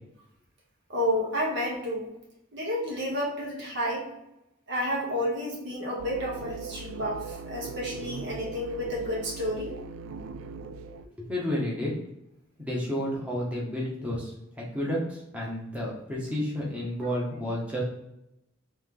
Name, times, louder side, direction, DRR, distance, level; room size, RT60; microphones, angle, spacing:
voice 1, 0.9-2.1 2.5-4.0 4.7-9.8, equal, 60° right, -3 dB, 1.3 m, -30 dB
sound 1, 6.0-11.0, right 4 dB, 90° right, 0.3 m, -40 dB
voice 2, 11.2-12.0 12.6-14.3 14.7-17.8, equal, 5° right, -5 dB, 1.0 m, -31 dB
3.3 x 3.3 x 3.7 m, 0.86 s
head